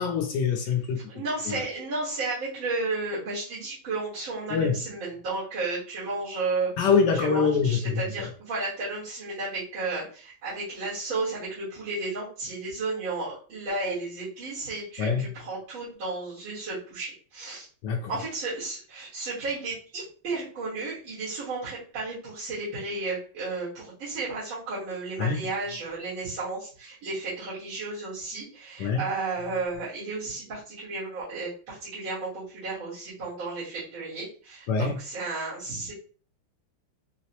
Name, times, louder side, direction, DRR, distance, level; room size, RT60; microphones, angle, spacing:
voice 1, 0.0-1.1 4.5-4.7 6.8-7.8 15.0-15.2 17.8-18.2 25.2-25.4 28.8-29.0 34.7-35.0, left 5 dB, 75° left, 3 dB, 1.1 m, -24 dB
voice 2, 1.1-17.7 18.1-35.9, right 3 dB, 75° right, -11 dB, 2.3 m, -33 dB
4.7 x 2.1 x 2.8 m, 0.41 s
omnidirectional pair, 2.2 m